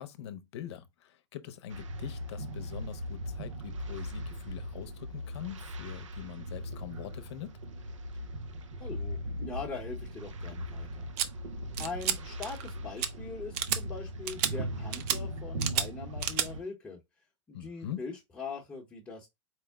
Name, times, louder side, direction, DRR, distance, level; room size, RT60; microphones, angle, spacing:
voice 1, 0.0-7.6 17.5-18.1, left 10 dB, 65° left, 0.7 m, -43 dB
sound 1, 1.7-16.6, equal, 90° right, 0.6 m, -39 dB
voice 2, 8.8-11.1 11.8-17.0 17.5-19.3, left 4 dB, 10° left, 0.8 m, -42 dB
sound 2, 11.2-11.3 11.8-12.2 12.4-12.7 13.0-13.1 13.5-13.8 14.3-14.5 14.9-15.2 15.6-15.9 16.2-16.5, right 10 dB, 40° right, 0.5 m, -30 dB
4.4 x 2.0 x 3.4 m
hypercardioid pair, 130°, 15 cm